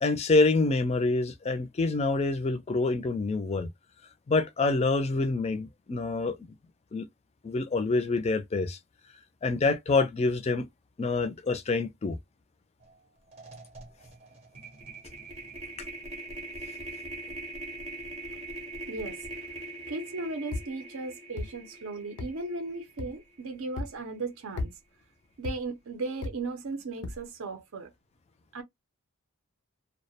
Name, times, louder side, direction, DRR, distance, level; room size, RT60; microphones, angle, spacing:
voice 1, 0.0-3.7 4.3-6.3 6.9-7.1 7.4-8.8 9.4-10.7 11.0-12.2, left 3 dB, 30° left, 0.3 m, -26 dB
sound 1, 12.8-13.0 13.3-23.5, right 2 dB, 25° right, 0.6 m, -42 dB
voice 2, 19.9-24.7 25.4-27.9 28.5-28.6, right 3 dB, 65° right, 0.5 m, -36 dB
sound 2, 20.5-20.7 21.4-21.5 22.2-22.3 23.0-23.1 23.8-23.9 24.6-24.7 25.4-25.6 26.2-26.4 27.0-27.2, left 2 dB, 85° left, 0.5 m, -34 dB
2.2 x 2.1 x 2.6 m
head